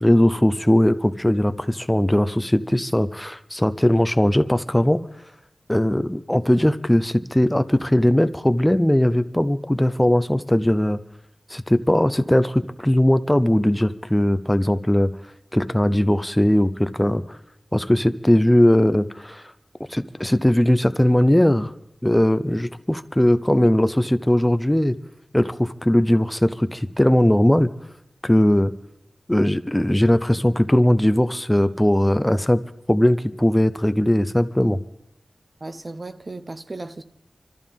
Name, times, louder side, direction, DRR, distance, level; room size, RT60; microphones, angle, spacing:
voice 1, 0.0-5.0 5.7-11.0 11.5-15.1 15.5-17.4 17.7-19.5 19.9-21.7 22.0-24.9 25.3-27.7 28.2-28.7 29.3-32.6 32.9-34.8, left 1 dB, 10° left, 0.5 m, -19 dB
voice 2, 35.6-37.0, right 2 dB, 40° right, 0.8 m, -35 dB
25.5 x 13.5 x 3.6 m
wide cardioid pair, 85°, 0 cm